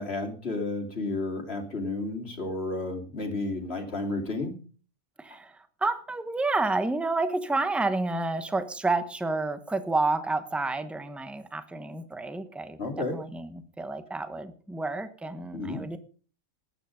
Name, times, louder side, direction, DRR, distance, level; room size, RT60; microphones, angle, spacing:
voice 1, 0.0-4.6 12.8-13.2 15.5-15.8, left 2 dB, 45° left, 4 dB, 2.9 m, -32 dB
voice 2, 5.2-12.8 13.1-16.0, right 3 dB, ahead, 10 dB, 1.0 m, -30 dB
19.0 x 9.3 x 5.2 m, 0.42 s
omnidirectional pair, 1.5 m